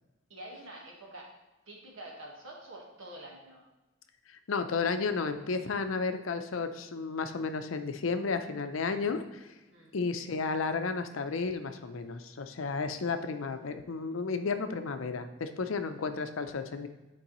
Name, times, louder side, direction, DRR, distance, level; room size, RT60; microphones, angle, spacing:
voice 1, 0.3-3.6 9.7-9.9, right 1 dB, 75° right, 0 dB, 1.4 m, -47 dB
voice 2, 4.5-9.5 9.9-16.9, left 4 dB, 90° left, 8 dB, 0.6 m, -33 dB
9.7 x 4.6 x 3.0 m, 1.1 s
head